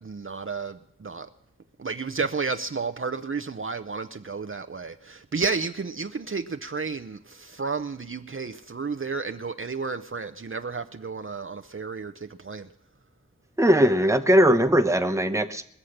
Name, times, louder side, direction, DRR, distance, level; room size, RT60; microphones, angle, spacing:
voice 1, 0.0-1.3 1.8-12.7, right 4 dB, 45° right, 0.6 m, -32 dB
voice 2, 13.6-15.7, equal, 10° right, 0.9 m, -20 dB
21.5 x 7.4 x 6.5 m
wide cardioid pair, 50°, 29 cm